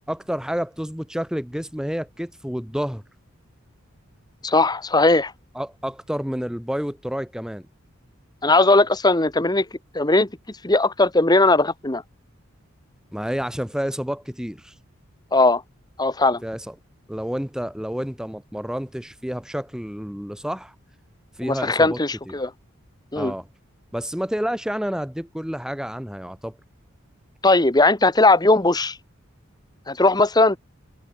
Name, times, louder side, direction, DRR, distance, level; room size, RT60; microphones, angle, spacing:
voice 1, 0.1-3.0 5.5-7.7 13.1-14.7 16.4-16.7 17.1-20.7 21.4-22.0 22.3-22.4 23.1-23.5 23.9-26.6, equal, 5° right, 1.1 m, -29 dB
voice 2, 4.4-5.3 8.4-9.7 9.9-10.3 10.6-12.0 15.3-15.6 16.0-16.4 21.4-22.5 23.1-23.3 27.4-29.0 29.9-30.6, left 2 dB, 20° left, 1.2 m, -18 dB
head